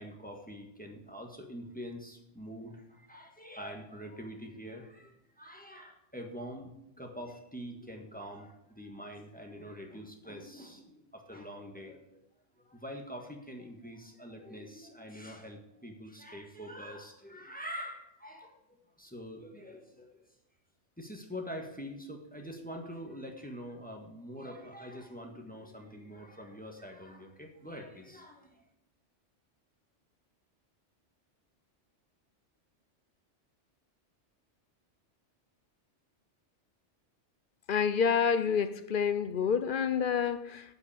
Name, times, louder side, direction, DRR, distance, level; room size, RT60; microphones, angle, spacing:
voice 1, 0.0-12.2 12.6-18.6 19.0-20.3 21.0-28.6, equal, 5° left, 1.5 m, -45 dB
voice 2, 37.7-40.6, left 6 dB, 55° left, 0.7 m, -28 dB
8.4 x 7.9 x 8.5 m
omnidirectional pair, 1.2 m